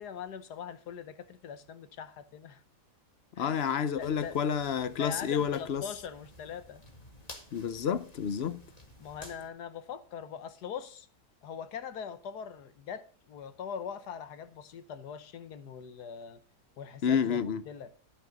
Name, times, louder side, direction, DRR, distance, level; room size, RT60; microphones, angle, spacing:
voice 1, 0.0-2.6 3.4-3.7 4.0-4.4 4.9-6.8 9.0-11.1 11.4-16.4 16.8-17.9, left 7 dB, 80° left, 1.6 m, -42 dB
voice 2, 3.4-5.8 7.5-8.6 17.0-17.6, left 7 dB, 55° left, 0.7 m, -29 dB
sound 1, 4.0-9.5, left 1 dB, 25° left, 2.1 m, -53 dB
13.5 x 6.5 x 5.2 m
omnidirectional pair, 1.7 m